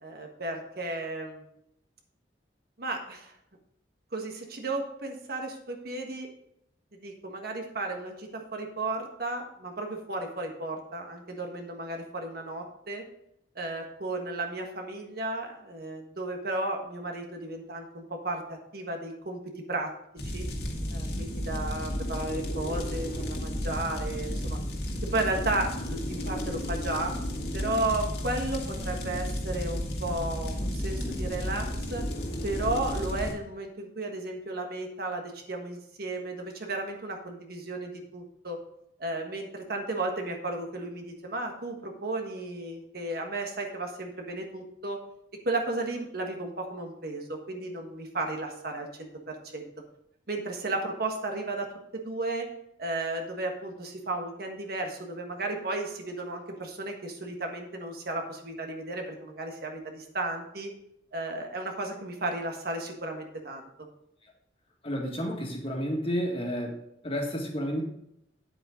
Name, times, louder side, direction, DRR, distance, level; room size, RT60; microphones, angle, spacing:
voice 1, 0.0-1.4 2.8-3.3 4.1-6.3 7.0-13.0 13.5-20.0 20.2-20.4 20.9-24.6 25.0-27.1 27.5-32.0 32.4-38.6 39.0-45.0 45.4-49.7 50.3-52.5 52.8-60.7 61.1-63.9, right 2 dB, 55° right, 2 dB, 1.4 m, -34 dB
sound 1, 20.2-33.3, equal, 60° left, 1.9 m, -33 dB
voice 2, 64.8-66.8 67.0-67.8, equal, 30° left, 0 dB, 1.8 m, -31 dB
9.3 x 7.9 x 3.8 m, 0.76 s
head